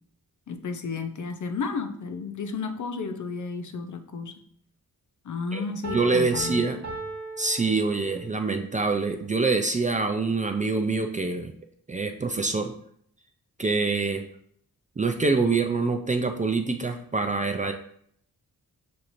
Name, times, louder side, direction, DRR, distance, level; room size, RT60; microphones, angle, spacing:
voice 1, 0.5-4.3 5.2-6.6, left 4 dB, 55° left, 7 dB, 0.5 m, -32 dB
Piano, 5.8-8.4, right 2 dB, 50° right, 1.2 m, -37 dB
voice 2, 5.9-6.8 7.4-11.5 11.9-12.7 13.6-14.2 15.0-17.7, right 3 dB, 20° right, 5 dB, 0.3 m, -25 dB
6.3 x 2.8 x 2.6 m, 0.65 s
wide cardioid pair, 80°, 35 cm